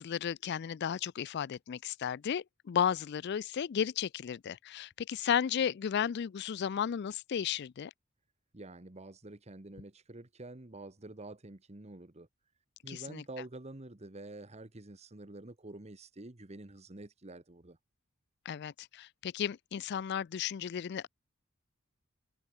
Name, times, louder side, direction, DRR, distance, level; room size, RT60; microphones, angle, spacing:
voice 1, 0.0-7.9 12.9-13.2 18.5-21.1, left 8 dB, 55° left, 0.4 m, -34 dB
voice 2, 8.5-12.3 12.8-17.8, right 2 dB, 30° right, 1.3 m, -48 dB
head